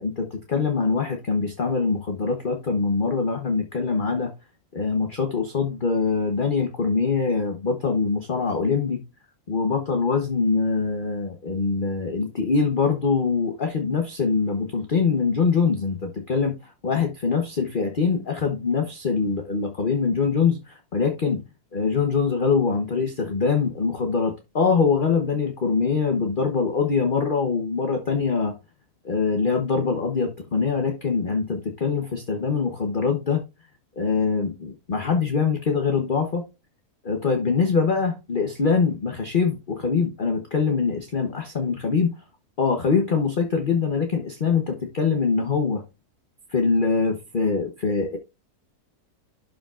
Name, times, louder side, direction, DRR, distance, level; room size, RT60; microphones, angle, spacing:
voice 1, 0.0-4.3 4.7-9.0 9.5-21.4 21.7-28.6 29.0-33.4 34.0-36.4 37.0-42.1 42.6-45.8 46.5-48.2, left 5 dB, 35° left, 1.0 m, -23 dB
11.5 x 5.0 x 2.4 m
omnidirectional pair, 1.7 m